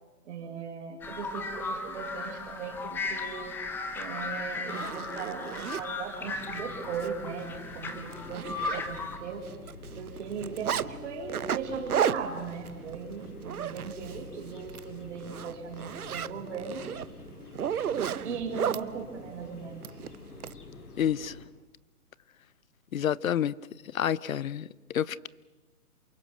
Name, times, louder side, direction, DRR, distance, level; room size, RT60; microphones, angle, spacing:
voice 1, 0.2-3.6 3.9-17.0 17.7-18.0 18.2-20.0, right 6 dB, 50° right, 5.9 m, -38 dB
sound 1, 1.0-9.2, left 3 dB, 5° left, 0.8 m, -36 dB
Zipper (clothing), 4.0-4.1 4.5-5.8 6.4-6.6 6.9-7.1 7.4-7.5 7.9-9.2 9.5-10.9 11.3-14.2 14.6-14.8 15.2-18.8 19.8-20.5, right 8 dB, 80° right, 0.9 m, -33 dB
sound 2, 6.2-21.4, left 2 dB, 85° left, 3.3 m, -47 dB
voice 2, 21.0-21.4 22.9-23.5 23.9-25.3, left 9 dB, 65° left, 0.8 m, -29 dB
28.0 x 23.5 x 6.2 m
hypercardioid pair, 140°, 44 cm